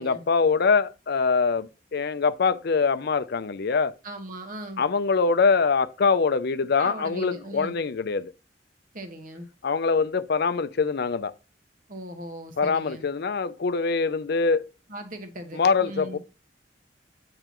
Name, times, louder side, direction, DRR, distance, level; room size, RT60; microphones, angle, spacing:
voice 1, 0.0-3.9 4.8-8.3 9.6-11.3 12.6-14.7 15.5-16.2, left 4 dB, 60° left, 0.5 m, -23 dB
voice 2, 4.0-4.8 6.8-7.8 8.9-9.5 11.9-13.1 14.9-16.2, right 1 dB, 50° right, 1.5 m, -38 dB
8.9 x 5.8 x 3.0 m
head